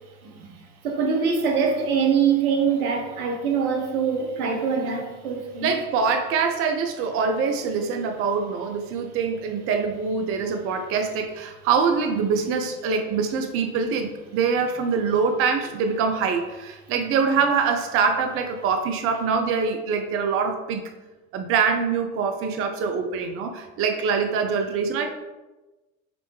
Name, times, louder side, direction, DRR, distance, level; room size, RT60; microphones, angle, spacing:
voice 1, 0.2-0.5 0.8-5.7, right 6 dB, 70° right, 0.9 m, -24 dB
voice 2, 5.6-20.8 21.3-25.1, right 5 dB, 30° right, 0.5 m, -24 dB
5.0 x 3.2 x 3.1 m
hypercardioid pair, 75°, 44 cm